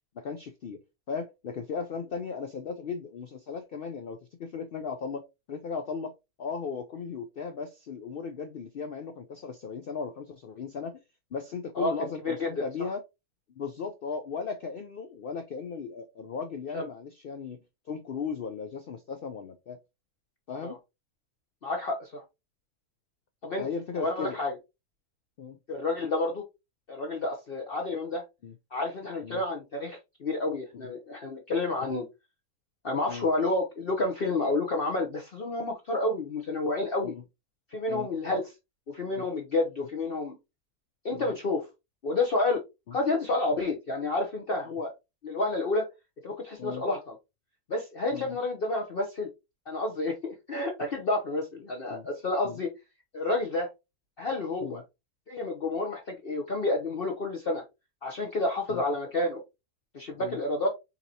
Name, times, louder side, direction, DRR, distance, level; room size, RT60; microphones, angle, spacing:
voice 1, 0.2-0.8 1.1-5.2 5.5-10.9 11.3-13.0 13.6-17.6 17.9-19.8 20.5-20.8 23.6-24.4 25.4-25.6 28.4-28.5 29.2-29.4 30.7-30.9 33.1-33.3 37.0-37.2 37.9-38.1 39.1-39.3 41.1-41.4 42.9-43.0 46.6-46.8 48.1-48.4 51.9-52.1 52.4-52.6 54.6-54.8 58.7-58.8 60.2-60.4, left 5 dB, 75° left, 0.5 m, -37 dB
voice 2, 11.8-12.6 16.7-16.8 20.6-20.7 21.6-22.2 23.4-23.7 24.0-24.5 25.7-26.4 26.9-28.2 28.7-32.0 32.8-37.1 37.7-38.4 38.9-40.4 41.0-41.6 42.0-42.6 42.9-44.9 45.2-45.9 46.2-47.1 47.7-49.3 49.7-52.7 53.1-53.7 54.2-54.8 55.3-57.6 58.0-59.4 59.9-60.7, left 2 dB, 45° left, 0.8 m, -30 dB
6.6 x 2.9 x 2.7 m
omnidirectional pair, 1.6 m